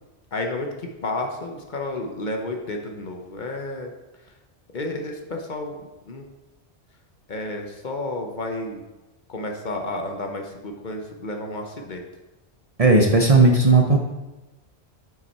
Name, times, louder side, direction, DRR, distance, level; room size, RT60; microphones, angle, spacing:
voice 1, 0.3-3.9 4.2-4.3 4.7-6.3 7.3-8.8 9.3-12.0, left 2 dB, 50° left, 3 dB, 0.9 m, -31 dB
voice 2, 12.8-14.0, right 3 dB, 40° right, 2 dB, 0.7 m, -15 dB
7.9 x 5.6 x 4.2 m, 1.1 s
omnidirectional pair, 1.1 m